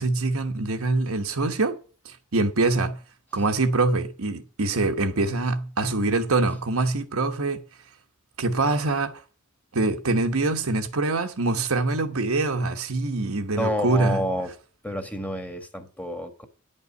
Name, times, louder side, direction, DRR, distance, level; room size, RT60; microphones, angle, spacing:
voice 1, 0.0-1.8 2.0-3.0 3.3-7.6 8.4-9.2 9.7-14.2, right 3 dB, 70° right, 1.1 m, -24 dB
voice 2, 13.5-14.5 14.8-16.4, equal, 5° left, 1.5 m, -29 dB
10.5 x 5.5 x 8.1 m
head